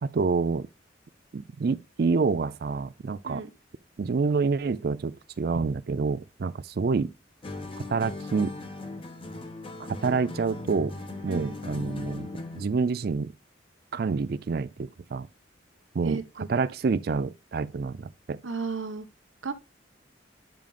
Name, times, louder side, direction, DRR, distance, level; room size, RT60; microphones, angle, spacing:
voice 1, 0.0-0.7 1.3-3.4 4.0-7.1 7.9-8.5 9.8-10.9 11.2-13.3 13.9-15.3 15.9-18.4, right 4 dB, 55° right, 0.4 m, -28 dB
sound 1, 7.4-12.8, left 2 dB, 30° left, 1.0 m, -38 dB
voice 2, 11.3-11.6 16.0-16.5 18.4-19.1 19.4-19.5, right 4 dB, 90° right, 1.0 m, -33 dB
10.5 x 5.2 x 2.4 m
head